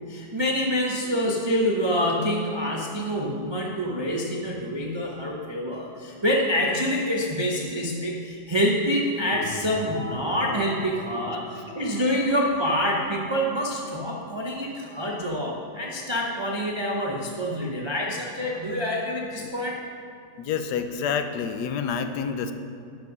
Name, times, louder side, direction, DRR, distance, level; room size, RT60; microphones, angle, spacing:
voice 1, 0.1-19.8, equal, 35° right, -2 dB, 0.4 m, -26 dB
sound 1, 9.3-18.9, left 1 dB, 20° left, 2.0 m, -43 dB
voice 2, 20.4-22.5, left 6 dB, 70° left, 8 dB, 1.1 m, -28 dB
10.5 x 5.4 x 6.0 m, 2.5 s
omnidirectional pair, 1.9 m